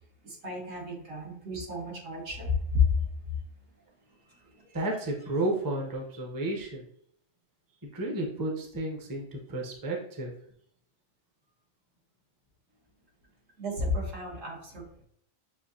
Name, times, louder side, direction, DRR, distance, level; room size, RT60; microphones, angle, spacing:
voice 1, 0.2-2.9 13.6-14.8, left 4 dB, 70° right, -2 dB, 1.6 m, -31 dB
voice 2, 4.7-6.8 7.9-10.3, right 2 dB, 20° right, -1 dB, 0.6 m, -32 dB
6.4 x 2.7 x 2.7 m, 0.65 s
omnidirectional pair, 1.4 m